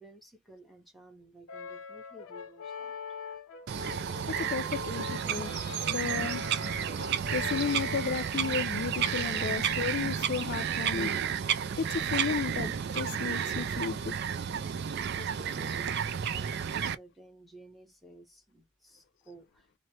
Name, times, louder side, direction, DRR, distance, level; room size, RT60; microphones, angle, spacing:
voice 1, 0.0-3.0 15.1-19.7, equal, ahead, 0.9 m, -53 dB
Brass instrument, 1.5-10.0, left 6 dB, 90° left, 0.7 m, -43 dB
Bird vocalization bird call bird song, 3.7-16.9, right 8 dB, 50° right, 0.3 m, -32 dB
voice 2, 4.3-6.4 7.3-11.2 11.8-14.2, left 6 dB, 55° left, 0.4 m, -34 dB
3.1 x 2.1 x 2.8 m
head